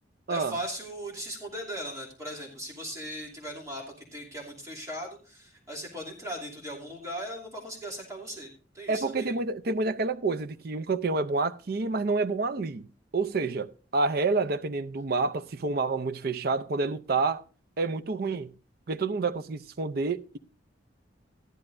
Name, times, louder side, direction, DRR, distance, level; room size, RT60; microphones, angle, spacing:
voice 1, 0.3-9.3, equal, 20° right, 2.7 m, -38 dB
voice 2, 8.9-12.8 13.1-17.4 17.8-18.5 18.9-20.4, right 3 dB, 55° right, 0.5 m, -28 dB
14.5 x 12.0 x 2.5 m
head